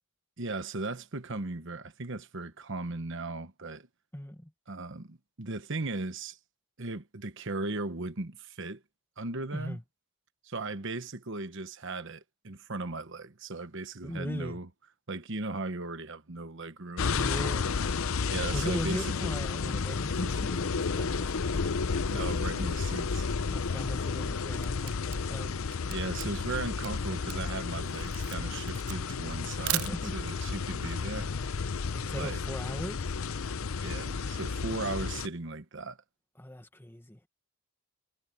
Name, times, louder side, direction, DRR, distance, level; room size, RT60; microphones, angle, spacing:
voice 1, 0.4-3.9 4.7-6.4 6.8-8.8 9.2-9.8 10.4-14.7 15.1-17.1 18.3-19.3 22.1-23.3 25.9-31.3 32.2-32.4 33.8-36.0, right 3 dB, 55° right, 1.1 m, -37 dB
voice 2, 4.1-4.5 9.5-9.8 14.0-14.6 17.0-17.7 18.5-21.6 23.5-25.6 29.6-30.1 31.9-33.1 36.4-37.2, equal, 10° left, 1.6 m, -38 dB
sound 1, 17.0-35.3, left 5 dB, 65° left, 0.6 m, -32 dB
Camera, 24.2-30.4, right 18 dB, 75° right, 0.4 m, -38 dB
head